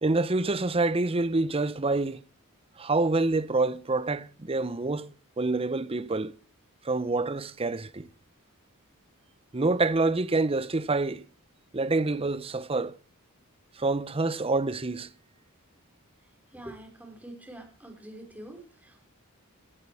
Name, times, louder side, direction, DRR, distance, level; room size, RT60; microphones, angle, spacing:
voice 1, 0.0-2.2 2.8-6.3 6.8-8.1 9.5-11.2 11.7-12.9 13.8-15.1, right 3 dB, 25° right, 0.7 m, -27 dB
voice 2, 16.2-19.1, right 1 dB, 5° right, 4.8 m, -46 dB
19.0 x 13.0 x 4.9 m
head